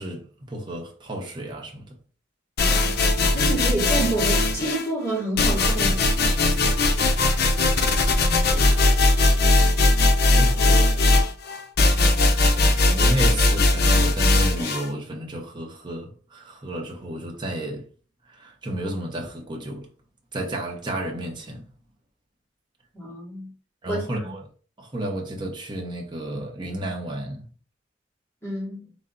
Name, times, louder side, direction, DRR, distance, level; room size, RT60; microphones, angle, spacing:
voice 1, 0.0-1.9 8.1-8.8 10.4-11.0 12.5-17.9 18.3-19.9 20.3-21.6 23.8-24.4 24.8-27.5, right 1 dB, 25° right, 0.9 m, -32 dB
sound 1, 2.6-4.9 5.4-14.9, left 2 dB, 55° left, 0.7 m, -19 dB
voice 2, 2.6-6.1 22.9-23.5 23.9-24.3 28.4-28.9, right 2 dB, 15° left, 2.4 m, -29 dB
3.9 x 3.3 x 3.9 m
head